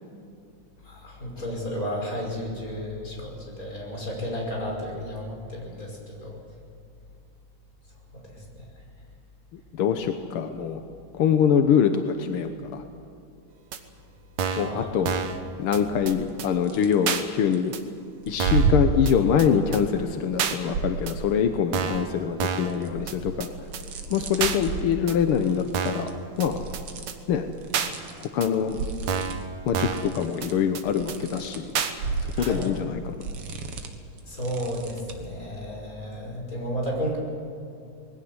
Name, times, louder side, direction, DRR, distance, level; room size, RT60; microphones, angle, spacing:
voice 1, 0.8-6.4 8.2-8.7 14.4-14.9 32.3-32.6 34.3-37.2, equal, 25° left, -1 dB, 5.9 m, -33 dB
voice 2, 9.5-10.8 11.2-12.8 14.6-15.2 15.6-17.7 18.3-23.5 24.1-26.1 26.4-26.6 27.3-27.5 28.2-28.9 29.6-31.7 32.2-33.1, left 8 dB, 65° left, 7 dB, 1.4 m, -24 dB
sound 1, 13.7-13.8 14.4-14.7 15.1-15.4 15.7-15.8 16.1-16.2 16.4-16.5 17.1-17.2 17.7-17.8 18.4-18.7 19.1-19.2 19.4-19.5 19.7-19.8 20.4-20.6 21.1-21.2 21.7-22.1 22.4-22.7 23.1-23.2 23.4-23.5 23.7-23.8 24.4-24.6 25.1-25.2 25.7-26.1 26.4-26.5 26.7-26.8 27.1-27.2 27.7-27.9 28.4-28.5 29.1-29.4 29.7-30.1 30.4-30.5 30.7-30.8 31.1-31.2 31.7-31.9 32.4-32.5, right 7 dB, 65° right, 2.5 m, -28 dB
sound 2, 15.7-16.3 16.6-17.6 18.2-21.5 21.9-28.3 28.5-35.3, right 4 dB, 50° right, 2.4 m, -32 dB
21.0 x 17.0 x 9.7 m, 2.6 s
omnidirectional pair, 3.5 m